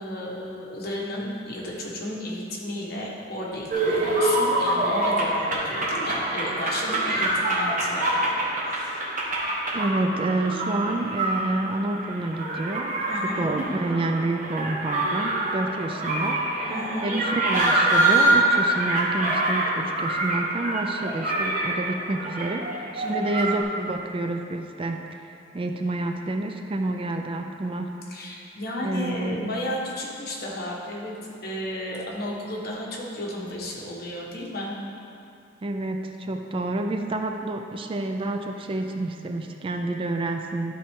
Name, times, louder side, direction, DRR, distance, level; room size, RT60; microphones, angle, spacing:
voice 1, 0.0-8.1 8.7-9.0 13.1-13.5 16.7-17.1 23.0-23.3 28.1-31.1 31.4-34.7, left 1 dB, 55° left, -3 dB, 1.3 m, -33 dB
sound 1, 3.7-23.6, right 2 dB, 45° right, 1.3 m, -25 dB
voice 2, 9.7-16.7 17.0-25.3 25.5-28.0 28.8-29.4 35.6-40.7, right 2 dB, 30° right, 5 dB, 0.4 m, -29 dB
12.0 x 4.3 x 3.6 m, 2.6 s
head